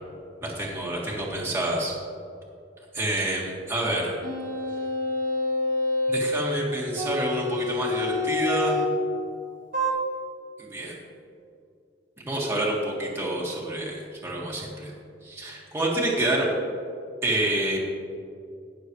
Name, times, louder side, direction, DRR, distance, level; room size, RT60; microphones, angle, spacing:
voice 1, 0.4-1.9 2.9-4.1 6.1-8.8 10.6-10.9 12.3-14.9 15.2-16.5 17.2-17.8, right 1 dB, 15° right, -4 dB, 1.7 m, -28 dB
sound 1, 4.2-6.3 7.0-9.0 9.7-9.9, left 2 dB, 50° right, 1.4 m, -27 dB
19.5 x 6.8 x 3.2 m, 2.5 s
head